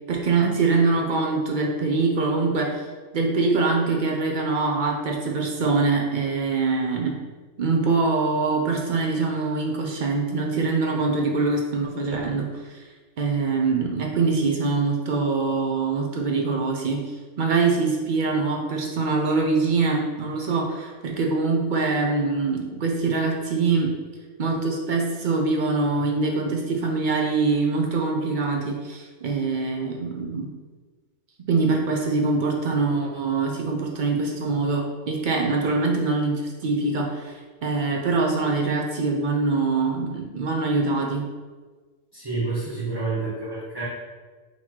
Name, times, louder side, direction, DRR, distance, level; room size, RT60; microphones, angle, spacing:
voice 1, 0.1-2.9 3.1-7.2 7.6-12.9 13.2-23.9 24.4-30.5 31.5-41.2, right 3 dB, 55° right, 0 dB, 0.5 m, -24 dB
voice 2, 42.1-43.9, right 3 dB, 20° right, -9 dB, 0.8 m, -28 dB
4.1 x 2.9 x 4.4 m, 1.4 s
omnidirectional pair, 1.3 m